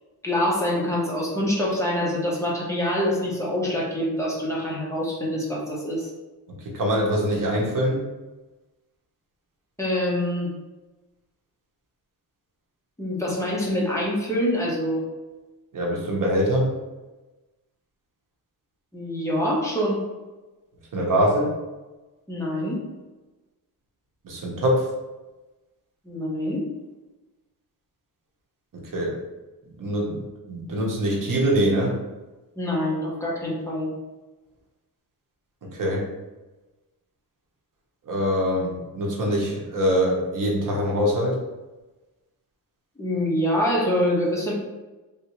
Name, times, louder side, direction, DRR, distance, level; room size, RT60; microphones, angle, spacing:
voice 1, 0.2-6.1 9.8-10.5 13.0-15.0 18.9-20.0 22.3-22.8 26.0-26.7 32.6-33.9 43.0-44.5, left 1 dB, 10° left, -5 dB, 0.7 m, -25 dB
voice 2, 6.5-8.0 15.7-16.7 20.9-21.6 24.2-24.9 28.9-29.2 29.8-32.0 35.6-36.0 38.1-41.4, equal, 55° right, -2 dB, 0.9 m, -23 dB
3.4 x 2.6 x 3.0 m, 1.1 s
wide cardioid pair, 175°, 38 cm